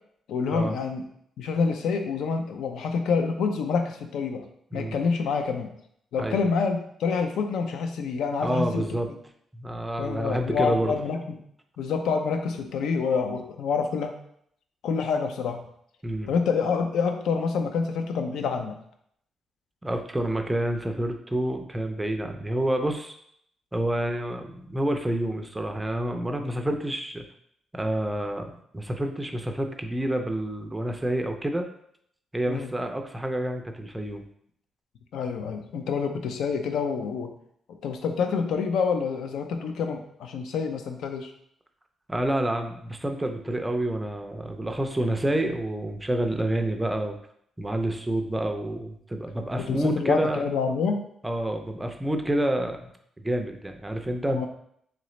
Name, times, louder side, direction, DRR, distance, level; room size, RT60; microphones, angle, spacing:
voice 1, 0.3-1.0 1.4-4.4 4.7-5.7 6.1-9.0 10.0-11.4 11.8-14.1 14.8-15.6 16.3-18.8 32.5-32.7 35.1-37.3 37.8-41.3 49.6-51.0 54.3-54.5, left 5 dB, 90° left, 5 dB, 0.5 m, -27 dB
voice 2, 8.4-9.1 9.5-10.9 16.0-16.3 19.8-23.2 23.7-27.2 27.7-31.7 32.3-34.2 42.1-47.2 47.6-50.4 51.2-52.9 53.2-54.5, right 1 dB, 10° right, 5 dB, 0.4 m, -28 dB
3.8 x 3.1 x 3.1 m, 0.69 s
cardioid pair, 135°, 0 cm